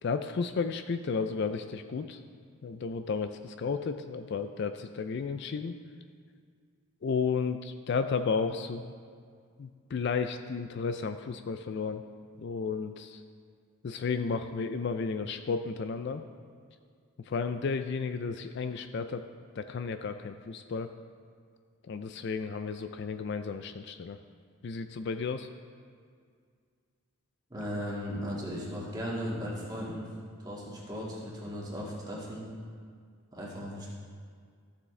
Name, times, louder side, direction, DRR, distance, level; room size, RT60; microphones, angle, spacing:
voice 1, 0.0-2.2 2.6-5.7 7.0-8.9 9.6-12.0 12.4-13.2 13.8-16.2 17.2-19.3 19.6-20.9 21.9-24.2 24.6-25.5, left 5 dB, 55° left, 9 dB, 0.3 m, -33 dB
voice 2, 27.5-30.1 30.4-32.5 33.3-33.9, equal, 20° right, -5 dB, 1.8 m, -36 dB
14.0 x 7.1 x 3.3 m, 2.1 s
head